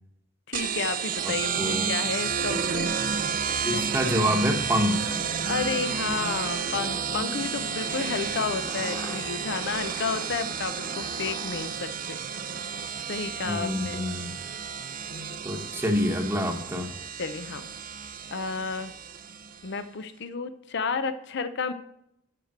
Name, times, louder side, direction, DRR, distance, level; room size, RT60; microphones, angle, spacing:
voice 1, 0.5-2.9 5.5-12.2 13.1-14.1 15.1-15.4 17.2-17.7 18.3-18.9 19.6-21.7, left 5 dB, 60° left, 11 dB, 0.6 m, -31 dB
sound 1, 0.5-19.7, right 6 dB, 45° right, 0.5 m, -31 dB
voice 2, 1.2-2.1 3.6-5.1 13.4-14.3 15.4-16.9, equal, 10° right, 3 dB, 1.0 m, -27 dB
Aircraft, 5.1-11.7, left 1 dB, 20° left, 1.4 m, -43 dB
7.6 x 6.6 x 5.9 m, 0.81 s
head